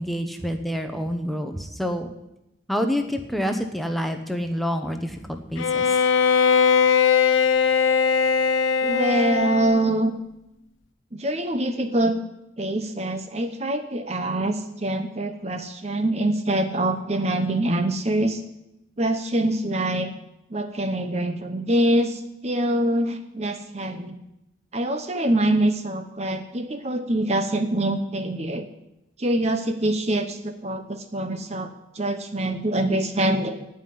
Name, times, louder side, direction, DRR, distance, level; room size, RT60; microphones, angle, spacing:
voice 1, 0.0-2.1 2.7-5.8, equal, ahead, 5 dB, 1.0 m, -27 dB
Bowed string instrument, 5.6-10.0, left 6 dB, 90° left, 0.7 m, -20 dB
voice 2, 8.8-10.1 11.1-12.2 12.6-18.4 19.0-20.1 20.5-24.2 24.7-28.7 29.2-33.6, right 1 dB, 35° right, 8 dB, 0.9 m, -24 dB
17.0 x 5.7 x 9.6 m, 0.89 s
head